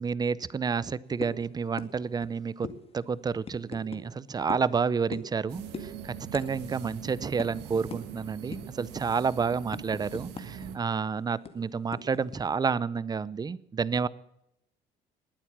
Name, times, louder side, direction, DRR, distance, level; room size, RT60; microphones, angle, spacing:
voice 1, 0.0-2.7 2.9-14.1, right 5 dB, 25° right, 20 dB, 0.6 m, -30 dB
sound 1, 1.2-1.4 1.8-1.9 2.2-2.3 2.6-2.8 3.4-4.0 4.5-4.7 5.1-5.4 5.7-5.9 6.3-6.5 6.8-6.9 7.4-7.5 7.9-8.0 8.5-8.8 9.2-10.7 10.9-11.0 11.5-12.4, left 5 dB, 35° left, 2.0 m, -39 dB
sound 2, 5.5-10.8, right 9 dB, 90° right, 1.6 m, -43 dB
20.0 x 9.3 x 7.3 m, 0.80 s
cardioid pair, 110°, 17 cm